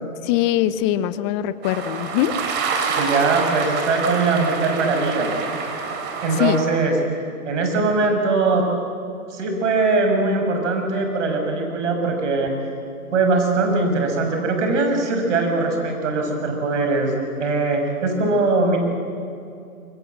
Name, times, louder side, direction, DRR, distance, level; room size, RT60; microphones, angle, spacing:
voice 1, 0.2-2.4 6.3-6.6, left 13 dB, 20° left, 15 dB, 0.6 m, -22 dB
sound 1, 1.6-6.6, right 5 dB, 25° right, 3.1 m, -27 dB
voice 2, 3.0-5.4 6.2-6.9 7.5-8.7 9.3-12.5 13.1-18.8, right 3 dB, 55° right, 4 dB, 5.8 m, -21 dB
24.5 x 22.5 x 7.9 m, 2.5 s
figure-of-eight pair, 120°, 43 cm